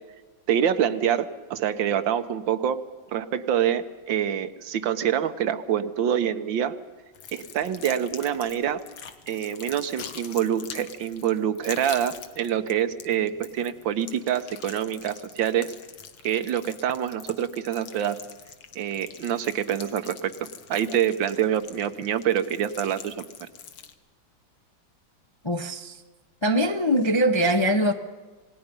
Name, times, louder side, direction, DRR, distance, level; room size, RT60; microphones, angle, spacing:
voice 1, 0.5-2.8 3.1-6.7 7.3-8.8 9.3-15.7 16.2-18.2 18.7-23.2, right 9 dB, 75° right, 1.6 m, -26 dB
sound 1, 7.1-23.9, left 7 dB, 80° left, 2.1 m, -44 dB
voice 2, 25.4-26.0 26.4-27.9, equal, 30° left, 0.5 m, -22 dB
27.5 x 18.5 x 5.3 m
omnidirectional pair, 2.1 m